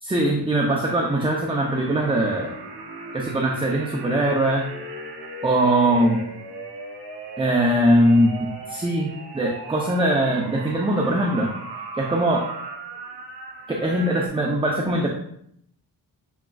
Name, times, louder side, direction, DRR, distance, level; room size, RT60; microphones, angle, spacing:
voice 1, 0.0-2.5 3.1-4.6 5.4-6.2 7.4-9.1 9.3-11.5 12.0-12.4 13.7-15.1, right 1 dB, 15° right, -1 dB, 0.5 m, -21 dB
sound 1, 0.9-14.3, right 3 dB, 70° right, 1.0 m, -37 dB
6.2 x 3.5 x 2.3 m, 0.70 s
wide cardioid pair, 110°, 40 cm